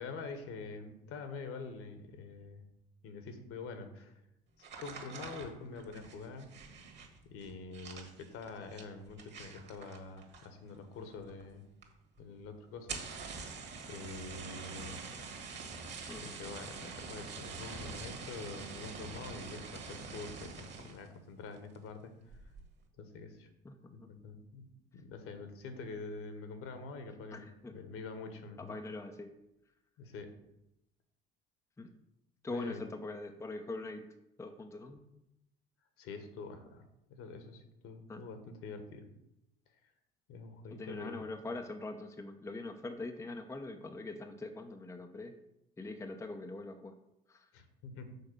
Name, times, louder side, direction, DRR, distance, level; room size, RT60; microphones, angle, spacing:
voice 1, 0.0-2.6 3.0-4.2 4.6-6.5 7.2-11.6 12.2-13.1 13.3-13.5 13.9-15.0 16.2-22.1 23.0-23.5 23.9-24.7 24.9-28.8 30.0-30.3 32.5-32.8 36.0-39.1 40.3-41.2 47.5-48.1, left 4 dB, 50° left, 8 dB, 1.3 m, -46 dB
sound 1, 4.6-10.7 11.0-11.5 11.8-11.9 12.2-12.3 12.7-21.1 21.5-21.9 22.3-22.7, right 4 dB, 35° right, 1.8 m, -45 dB
voice 2, 23.6-24.1 27.3-27.7 28.6-29.3 31.8-31.9 32.4-34.0 34.4-35.0 38.1-38.2 40.7-45.3 45.8-46.9 47.3-47.5, left 2 dB, 10° left, 4 dB, 0.7 m, -43 dB
6.8 x 4.7 x 6.3 m, 0.86 s
figure-of-eight pair, 60°, 30 cm